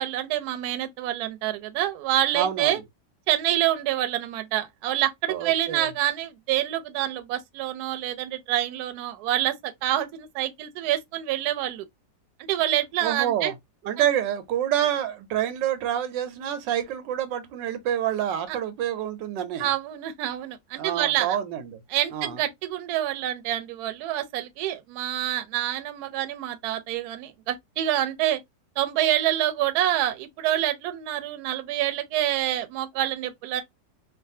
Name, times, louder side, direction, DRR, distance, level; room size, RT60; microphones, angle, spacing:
voice 1, 0.0-2.8 3.3-11.8 12.4-13.5 14.0-14.1 18.5-18.6 19.6-21.4 21.9-28.4 28.8-33.6, right 13 dB, 70° right, 1.0 m, -27 dB
voice 2, 2.3-2.8 5.3-5.9 13.0-13.5 13.8-19.7 20.8-21.8 22.1-22.4, right 10 dB, 90° right, 1.3 m, -27 dB
3.2 x 2.2 x 2.5 m
omnidirectional pair, 1.9 m